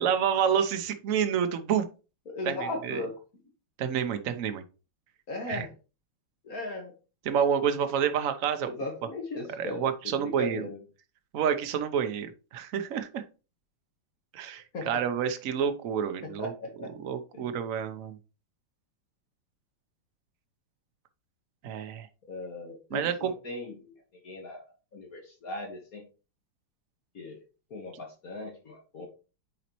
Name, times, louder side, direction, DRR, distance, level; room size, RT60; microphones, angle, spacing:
voice 1, 0.0-1.9 2.5-3.0 3.8-4.6 5.5-5.7 7.3-8.7 9.6-10.7 11.3-13.2 14.3-16.5 17.0-18.2 21.6-22.1 22.9-23.3, right 8 dB, 65° right, 8 dB, 0.8 m, -28 dB
voice 2, 2.3-3.2 5.3-5.7 6.4-7.0 8.6-10.8 14.7-14.9 16.2-16.9 17.3-17.5 22.3-26.0 27.1-27.4 27.7-29.1, left 2 dB, 45° left, 2 dB, 1.5 m, -38 dB
9.1 x 4.1 x 3.0 m, 0.33 s
omnidirectional pair, 2.4 m